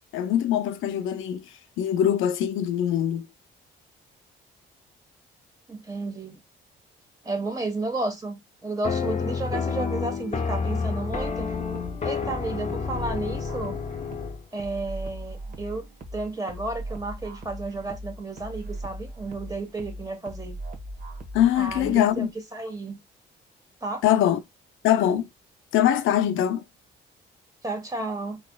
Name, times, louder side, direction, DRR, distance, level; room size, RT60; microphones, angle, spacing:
voice 1, 0.1-1.4 1.8-3.3 21.3-22.3 24.0-24.4 24.8-25.2 25.7-26.6, left 10 dB, 85° left, 0.5 m, -22 dB
voice 2, 5.7-6.4 7.2-11.5 12.0-13.8 14.5-15.9 16.1-20.6 21.5-23.0 23.8-24.0 27.6-28.4, right 2 dB, 20° right, 1.3 m, -32 dB
sound 1, 8.8-14.4, left 5 dB, 35° left, 0.8 m, -29 dB
sound 2, 11.1-22.1, right 1 dB, 45° right, 1.2 m, -39 dB
4.0 x 2.9 x 2.3 m
cardioid pair, 90°, 20 cm